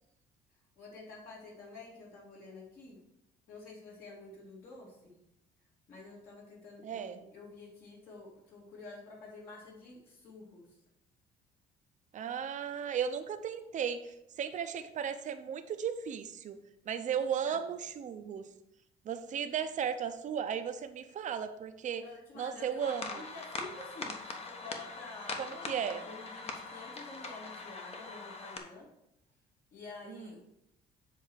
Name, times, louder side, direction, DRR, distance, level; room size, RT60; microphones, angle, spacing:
voice 1, 0.8-3.0 3.5-5.1 5.9-10.7 17.4-17.7 22.0-28.9 29.7-30.4, left 3 dB, 60° left, -4 dB, 2.6 m, -49 dB
voice 2, 6.8-7.2 12.1-16.6 16.9-18.5 19.0-22.0 22.3-23.2 25.4-26.0 30.1-30.3, right 8 dB, 45° right, 9 dB, 0.7 m, -35 dB
sound 1, 22.8-28.6, left 3 dB, 35° left, 1.1 m, -42 dB
7.6 x 3.5 x 6.4 m, 0.83 s
cardioid pair, 110°, 17 cm